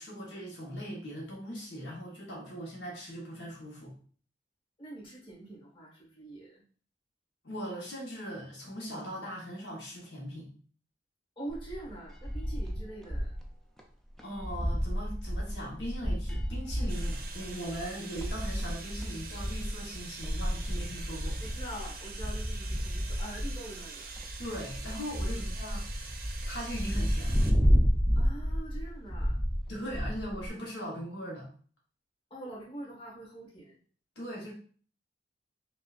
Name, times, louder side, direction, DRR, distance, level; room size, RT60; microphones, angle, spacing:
voice 1, 0.0-3.9 7.4-10.5 14.2-21.4 24.4-25.8 26.5-27.5 29.7-31.5 34.2-34.5, equal, 75° left, -4 dB, 1.2 m, -40 dB
voice 2, 4.8-6.6 11.3-13.4 21.4-24.1 25.3-25.4 28.1-29.4 32.3-33.8, right 1 dB, 30° left, -4 dB, 1.6 m, -44 dB
sound 1, 11.5-13.5 13.8-13.9 14.2-30.5, equal, 5° left, 0.4 m, -31 dB
sound 2, 16.9-27.5, right 5 dB, 55° right, 0.5 m, -45 dB
5.3 x 2.4 x 2.5 m, 0.43 s
head